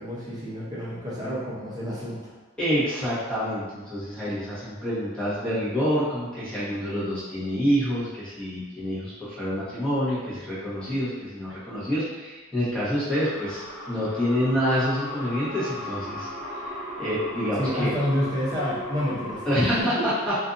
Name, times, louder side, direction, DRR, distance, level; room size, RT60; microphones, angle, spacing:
voice 1, 0.0-2.3 17.6-20.1, equal, 20° right, -7 dB, 0.7 m, -29 dB
voice 2, 2.6-16.3 17.0-17.9 19.4-20.4, equal, 5° left, -11 dB, 1.0 m, -27 dB
sound 1, 13.1-19.8, left 1 dB, 65° left, 0.8 m, -37 dB
2.6 x 2.5 x 2.5 m, 1.2 s
head